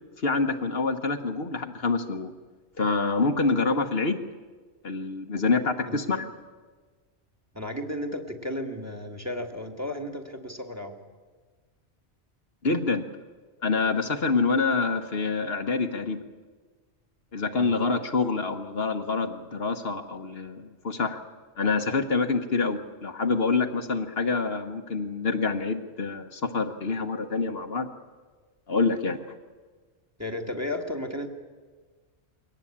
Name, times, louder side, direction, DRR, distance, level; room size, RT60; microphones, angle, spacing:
voice 1, 0.2-2.3 2.8-4.2 4.8-6.3 12.6-13.0 13.6-16.2 17.3-21.2 21.6-27.9 28.7-29.2, left 4 dB, 60° left, 6 dB, 1.4 m, -26 dB
voice 2, 7.5-11.0 17.5-17.8 30.2-31.3, left 1 dB, 15° right, 6 dB, 1.8 m, -34 dB
22.5 x 18.0 x 8.7 m, 1.4 s
omnidirectional pair, 1.2 m